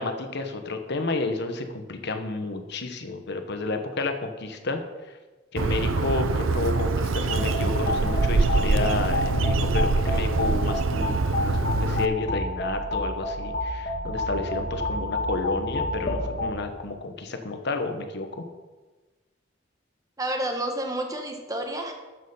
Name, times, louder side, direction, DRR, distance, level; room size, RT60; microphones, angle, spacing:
voice 1, 0.0-4.8 5.5-18.4, left 3 dB, 60° left, 6 dB, 1.1 m, -31 dB
Bird, 5.6-12.1, right 3 dB, 85° right, 0.6 m, -24 dB
sound 1, 7.3-16.5, left 1 dB, 45° left, 2.3 m, -29 dB
voice 2, 20.2-21.9, right 1 dB, 20° right, 3 dB, 1.4 m, -30 dB
13.5 x 6.7 x 5.5 m, 1.3 s
head